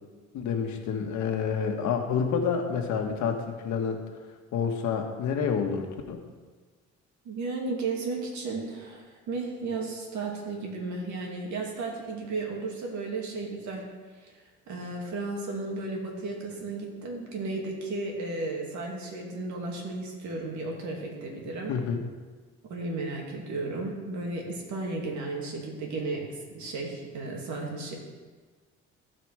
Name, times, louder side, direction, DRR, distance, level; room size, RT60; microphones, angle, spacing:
voice 1, 0.3-4.0 4.5-6.2 21.7-22.0, left 6 dB, 75° left, 4 dB, 1.4 m, -28 dB
voice 2, 7.2-13.9 14.2-14.4 14.7-21.7 22.6-26.3 26.5-28.0, right 3 dB, 75° right, 0 dB, 2.4 m, -34 dB
15.0 x 5.1 x 4.7 m, 1.4 s
cardioid pair, 100°, 29 cm